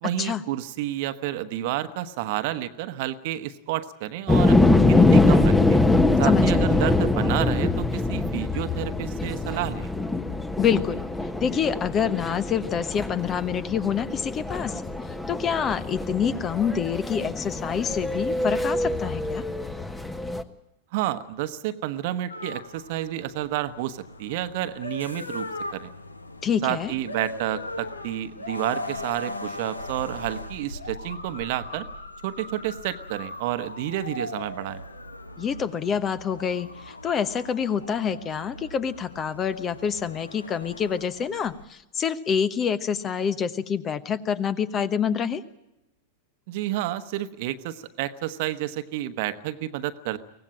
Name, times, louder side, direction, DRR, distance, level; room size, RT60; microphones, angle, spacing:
voice 1, 0.0-4.6 4.8-5.8 6.2-9.9 20.9-25.5 25.7-25.9 26.6-31.9 32.2-34.8 46.5-50.2, right 13 dB, 50° right, 10 dB, 1.2 m, -30 dB
sound 1, 4.3-20.4, left 2 dB, 10° left, 1.2 m, -23 dB
voice 2, 6.2-6.8 10.6-14.8 15.3-19.4 26.4-26.9 35.4-45.4, left 7 dB, 25° left, 15 dB, 1.1 m, -27 dB
sound 2, 22.3-41.6, left 2 dB, 80° left, 1.1 m, -39 dB
24.0 x 18.0 x 8.7 m, 0.91 s
figure-of-eight pair, 90°, 0 cm